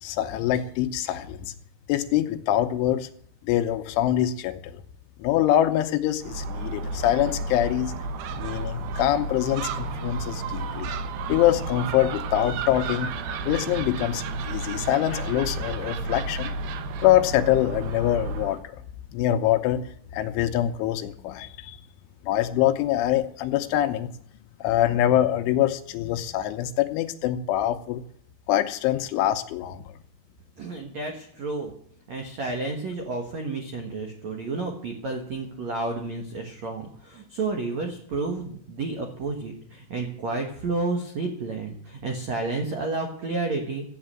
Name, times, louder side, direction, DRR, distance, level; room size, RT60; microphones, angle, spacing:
voice 1, 0.0-1.5 1.9-3.1 3.4-4.8 5.2-7.9 8.4-10.9 11.3-13.1 13.5-16.5 17.0-18.6 19.1-19.8 20.1-21.8 22.2-24.1 24.6-28.0 28.5-29.8, left 12 dB, 80° left, 8 dB, 3.1 m, -24 dB
Gull seagull, 6.2-18.6, right 3 dB, 90° right, 2.1 m, -32 dB
voice 2, 30.6-31.7 32.1-43.8, right 3 dB, 70° right, 3 dB, 1.6 m, -31 dB
14.0 x 8.5 x 8.9 m, 0.62 s
omnidirectional pair, 5.8 m